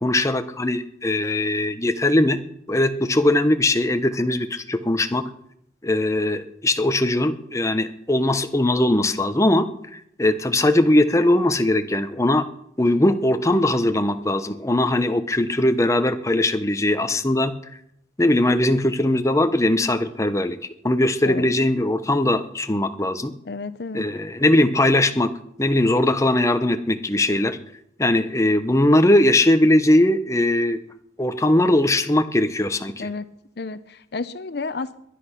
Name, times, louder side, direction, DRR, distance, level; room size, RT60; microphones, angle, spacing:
voice 1, 0.0-2.4 2.7-5.3 5.8-9.7 9.9-12.4 12.8-17.5 18.2-20.6 20.8-23.3 23.9-25.3 25.6-27.6 28.0-30.8 31.2-33.1, left 1 dB, 15° left, 8 dB, 0.9 m, -20 dB
voice 2, 23.5-24.0 33.0-33.2 33.6-35.0, left 3 dB, 65° left, 14 dB, 0.7 m, -31 dB
22.0 x 10.0 x 5.9 m, 0.73 s
head